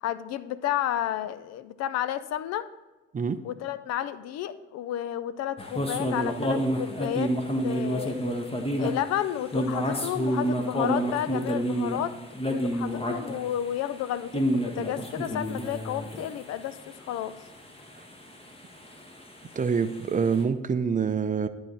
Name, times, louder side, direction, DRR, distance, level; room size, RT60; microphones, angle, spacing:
voice 1, 0.0-2.7 3.4-7.3 7.6-8.2 8.8-12.2 12.4-17.3, left 11 dB, 55° left, 14 dB, 0.5 m, -31 dB
sound 1, 5.6-20.4, equal, 20° left, 1.5 m, -30 dB
voice 2, 19.6-21.5, right 6 dB, 25° right, 11 dB, 0.6 m, -26 dB
11.0 x 4.2 x 6.4 m, 1.1 s
figure-of-eight pair, 45°, 31 cm